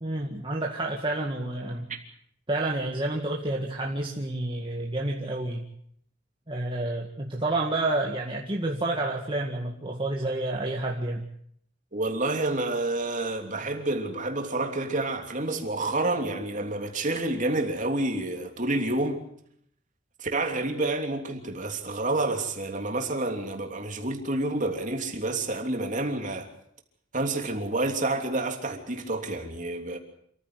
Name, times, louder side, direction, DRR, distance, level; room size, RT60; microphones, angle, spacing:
voice 1, 0.0-1.9 2.5-5.7 6.5-11.3, right 2 dB, 25° right, 2.0 m, -29 dB
voice 2, 11.9-19.2 20.2-26.5 27.1-30.0, right 2 dB, 40° right, 3.2 m, -29 dB
27.5 x 15.0 x 8.1 m
head